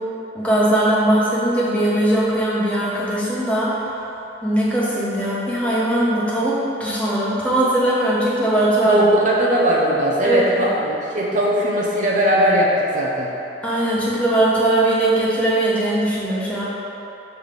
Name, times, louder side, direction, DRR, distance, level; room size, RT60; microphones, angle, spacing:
voice 1, 0.3-3.9 4.4-9.0 10.2-10.7 13.6-16.6, right 1 dB, 5° left, -7 dB, 1.0 m, -20 dB
voice 2, 8.8-13.3, equal, 45° right, -3 dB, 0.6 m, -19 dB
6.6 x 3.2 x 5.2 m, 3.0 s
head